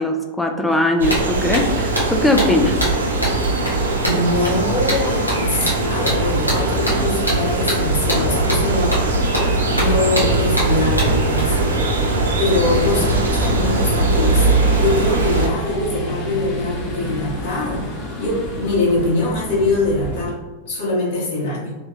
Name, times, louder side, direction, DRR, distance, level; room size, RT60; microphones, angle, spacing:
voice 1, 0.0-2.8, left 1 dB, 5° left, 3 dB, 0.3 m, -20 dB
sound 1, 0.7-0.8 1.1-11.4, equal, 85° left, 0.9 m, -25 dB
sound 2, 1.0-15.5, right 3 dB, 70° right, 0.5 m, -20 dB
voice 2, 4.0-9.0 9.7-11.7 12.4-17.8 18.2-20.4 20.7-21.7, left 2 dB, 55° left, -6 dB, 1.1 m, -23 dB
sound 3, 4.6-20.3, equal, 35° left, 0.8 m, -29 dB
3.1 x 2.7 x 2.3 m, 1.2 s
figure-of-eight pair, 90°, 0 cm